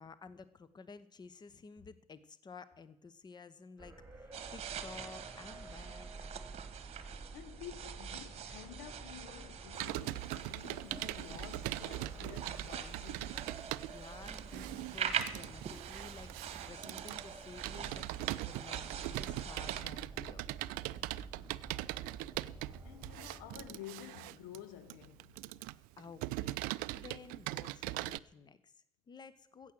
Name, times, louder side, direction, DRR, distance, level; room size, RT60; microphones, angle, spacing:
voice 1, 0.0-6.4 13.8-20.4 26.0-29.7, left 4 dB, 25° left, 1.0 m, -53 dB
sound 1, 3.8-23.7, right 3 dB, 10° right, 2.3 m, -50 dB
sound 2, 4.3-19.8, right 8 dB, 35° right, 1.3 m, -44 dB
voice 2, 6.9-13.5 22.8-25.4, left 12 dB, 60° left, 0.8 m, -51 dB
Computer keyboard, 9.7-28.2, right 19 dB, 55° right, 0.4 m, -41 dB
15.0 x 7.8 x 7.7 m
figure-of-eight pair, 60°, 17 cm